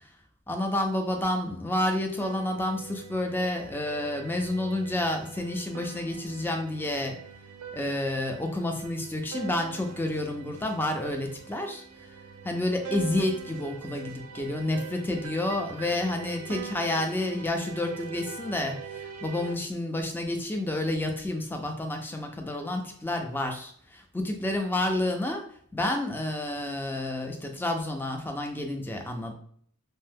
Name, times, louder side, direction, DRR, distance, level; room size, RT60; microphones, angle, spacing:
voice 1, 0.5-7.2 7.7-12.1 12.4-25.4 25.7-29.3, left 1 dB, 10° left, 4 dB, 0.3 m, -30 dB
sound 1, 2.2-19.5, right 7 dB, 85° right, 0.4 m, -43 dB
2.6 x 2.1 x 3.4 m, 0.62 s
head